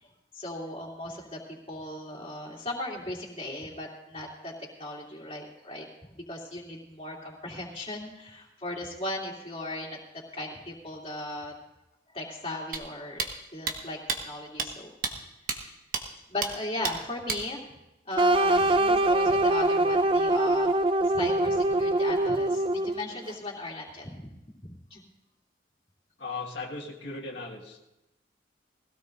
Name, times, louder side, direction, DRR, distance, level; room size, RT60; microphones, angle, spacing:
voice 1, 0.0-10.0 10.3-11.5 12.1-13.3 13.5-14.9 15.5-15.8 16.3-17.7 18.0-20.8 21.0-24.3 24.6-25.0, left 1 dB, 30° left, -3 dB, 2.8 m, -37 dB
Drumstick wood tap stick series of Hits, 12.7-12.8 13.2-13.3 13.7-13.8 14.1-14.2 14.6-14.7 15.0-15.1 15.5-15.6 15.9-16.0 16.4-16.5 16.8-17.0 17.3-17.4, right 5 dB, 50° right, 1.2 m, -29 dB
sound 1, 18.2-23.1, right 2 dB, 30° right, 0.5 m, -23 dB
voice 2, 26.2-27.9, left 3 dB, 85° left, -3 dB, 1.7 m, -37 dB
20.5 x 16.5 x 2.6 m, 0.96 s
head